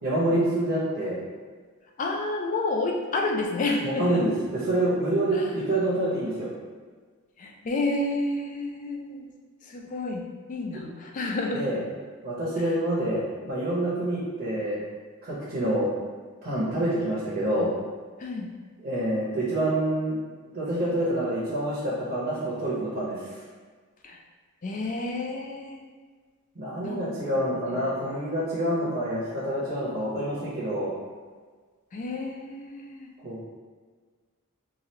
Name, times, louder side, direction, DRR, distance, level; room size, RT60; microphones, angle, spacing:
voice 1, 0.0-1.2 3.8-6.5 11.5-11.8 12.2-14.8 15.2-15.9 16.4-17.7 18.8-20.2 20.5-23.2 26.6-30.9 33.2-33.4, right 1 dB, 45° right, -9 dB, 0.7 m, -27 dB
voice 2, 2.0-4.2 5.3-5.6 7.4-9.3 9.6-10.2 10.5-11.7 12.5-12.8 18.2-18.5 24.0-24.2 24.6-25.8 26.8-27.1 27.4-28.0 31.9-33.1, left 2 dB, 35° left, 1 dB, 0.3 m, -30 dB
3.2 x 2.4 x 2.7 m, 1.5 s
head